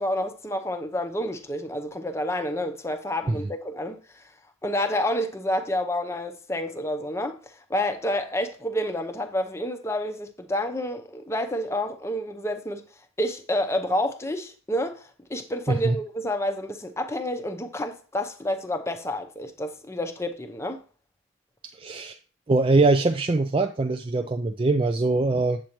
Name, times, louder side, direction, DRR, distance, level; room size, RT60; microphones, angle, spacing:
voice 1, 0.0-4.3 4.6-12.9 13.2-20.8, left 1 dB, 15° left, 0.7 m, -29 dB
voice 2, 21.6-22.2 22.5-25.6, right 3 dB, 25° right, 0.3 m, -22 dB
8.5 x 7.6 x 3.0 m
head